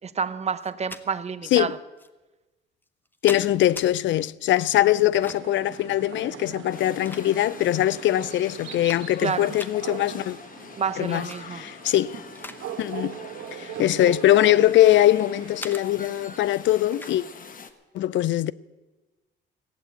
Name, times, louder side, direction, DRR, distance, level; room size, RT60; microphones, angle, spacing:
voice 1, 0.0-1.8 9.2-9.5 10.8-11.6 13.6-13.8, right 6 dB, 35° right, 0.8 m, -29 dB
sound 1, 0.6-1.1 2.0-2.1 2.8-3.9 5.0-5.6 6.6-7.7 8.2-8.3 8.6-9.3 9.6-9.8 11.1-11.4 11.8-12.6 12.9-13.2 13.9-15.1 15.6-15.8 16.9-17.2, left 1 dB, 10° left, 0.8 m, -41 dB
voice 2, 3.2-10.4 11.0-11.3 11.5-12.1 12.8-13.2 13.6-17.2 17.9-18.5, left 13 dB, 70° left, 0.5 m, -22 dB
sound 2, 5.1-16.4, right 10 dB, 80° right, 1.3 m, -40 dB
sound 3, 6.7-17.7, left 5 dB, 45° left, 1.2 m, -44 dB
16.0 x 8.1 x 9.0 m
cardioid pair, 90°, 20 cm